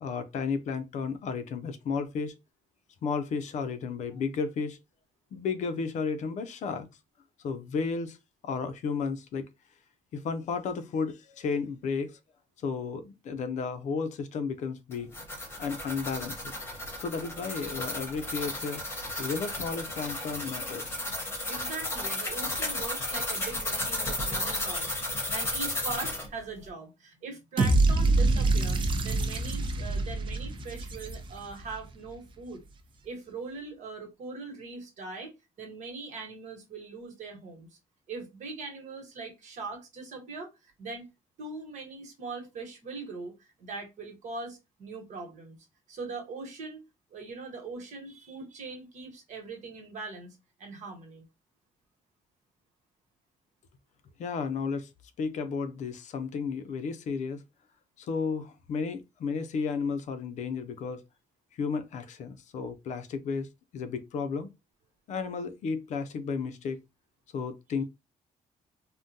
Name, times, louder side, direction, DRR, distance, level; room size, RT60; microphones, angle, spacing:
voice 1, 0.0-2.4 3.0-4.8 5.3-6.9 7.4-8.2 8.4-9.5 10.1-12.2 12.6-15.1 15.6-16.5 17.0-18.8 19.2-21.0 54.2-54.9 55.2-57.4 58.0-61.0 61.5-64.5 65.1-66.8 67.3-67.8, left 5 dB, 65° left, 0.5 m, -33 dB
sound 1, 14.9-26.3, left 1 dB, 20° left, 0.8 m, -34 dB
voice 2, 21.5-32.6 33.0-37.7 38.1-41.1 41.4-45.6 45.9-46.8 47.1-51.2, right 3 dB, 65° right, 1.2 m, -41 dB
sound 2, 27.6-31.7, right 2 dB, 40° right, 0.5 m, -26 dB
3.6 x 2.2 x 2.6 m
cardioid pair, 150°, 13 cm